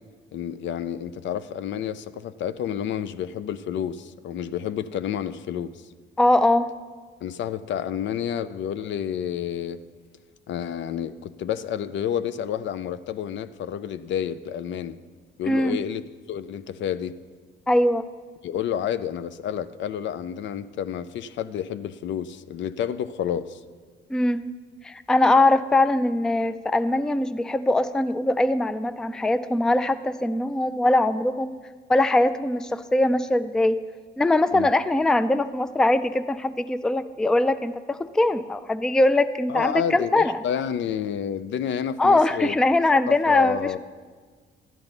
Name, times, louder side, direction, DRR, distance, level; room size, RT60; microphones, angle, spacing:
voice 1, 0.3-5.8 7.2-9.8 10.5-15.0 15.4-16.0 16.3-17.2 18.4-23.6 34.5-34.7 39.5-42.5 43.1-43.8, left 9 dB, 70° left, 14 dB, 0.5 m, -30 dB
voice 2, 6.2-6.7 15.5-15.8 17.7-18.0 24.1-24.4 24.8-31.6 31.9-33.8 34.2-40.4 42.0-43.8, left 2 dB, 5° left, 13 dB, 0.3 m, -21 dB
12.0 x 8.8 x 4.0 m, 1.5 s
cardioid pair, 90°, 20 cm